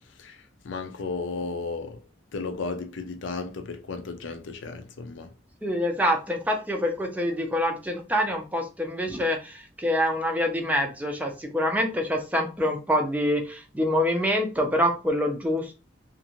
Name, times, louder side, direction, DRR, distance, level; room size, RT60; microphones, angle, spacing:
voice 1, 0.6-2.0 2.3-5.3, left 4 dB, 80° left, 0.5 m, -34 dB
voice 2, 5.6-15.7, equal, 10° right, 0.4 m, -26 dB
2.5 x 2.5 x 2.9 m
head